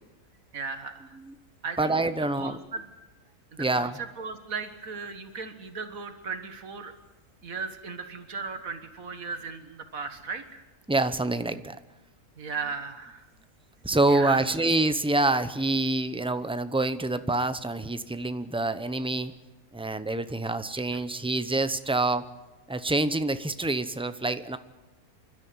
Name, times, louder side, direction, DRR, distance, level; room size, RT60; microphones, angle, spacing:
voice 1, 0.5-1.2 1.6-2.0 2.4-2.8 3.5-3.9 4.2-6.9 7.4-10.6 12.4-13.3 14.1-14.4 20.9-21.0, right 5 dB, 75° right, 8 dB, 1.9 m, -36 dB
voice 2, 1.8-2.6 3.6-4.0 10.9-11.8 13.8-19.3 19.7-22.2 22.7-24.6, right 2 dB, 5° right, 11 dB, 0.4 m, -26 dB
27.5 x 12.5 x 9.5 m, 1.1 s
omnidirectional pair, 1.5 m